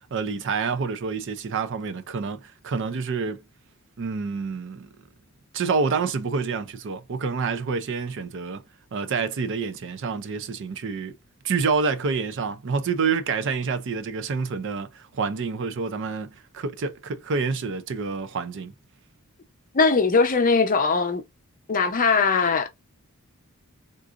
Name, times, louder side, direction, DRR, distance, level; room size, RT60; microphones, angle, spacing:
voice 1, 0.1-3.4 4.0-4.9 5.5-8.6 8.9-11.1 11.4-18.7, right 5 dB, 60° right, 0.5 m, -28 dB
voice 2, 19.7-21.2 21.7-22.7, left 4 dB, 40° left, 0.7 m, -20 dB
3.8 x 2.5 x 2.4 m
head